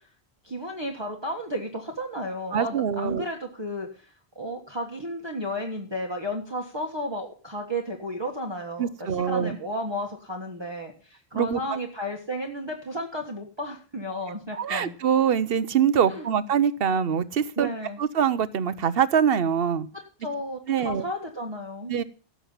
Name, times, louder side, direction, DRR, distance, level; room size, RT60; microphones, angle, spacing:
voice 1, 0.4-14.9 16.1-16.3 17.6-18.0 20.2-21.9, equal, 25° right, 0 dB, 1.6 m, -33 dB
voice 2, 2.5-3.2 8.8-9.6 11.3-11.6 14.5-17.7 18.0-19.9 20.7-21.0 21.9-22.0, right 8 dB, 65° right, 15 dB, 1.0 m, -24 dB
17.0 x 7.2 x 5.6 m, 0.37 s
omnidirectional pair, 1.1 m